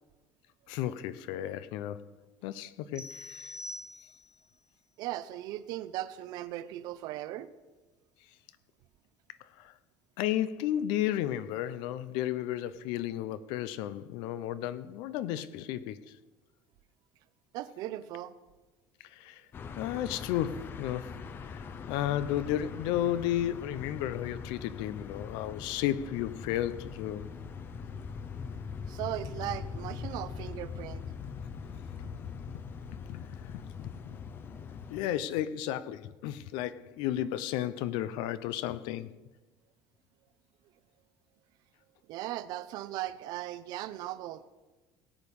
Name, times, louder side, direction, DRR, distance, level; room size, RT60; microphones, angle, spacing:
voice 1, 0.7-2.1 2.4-3.5 9.6-9.7 10.2-16.1 19.1-19.4 19.8-21.1 21.5-27.3 33.1-34.2 34.9-39.1, left 12 dB, 75° left, 0.7 m, -33 dB
sound 1, 2.9-4.5, left 1 dB, 5° right, 1.4 m, -44 dB
voice 2, 5.0-7.5 17.5-18.3 28.9-31.0 42.1-44.5, right 14 dB, 55° right, 0.7 m, -38 dB
sound 2, 19.5-35.0, left 6 dB, 25° left, 0.6 m, -42 dB
18.0 x 8.5 x 5.4 m
cardioid pair, 175°, 8 cm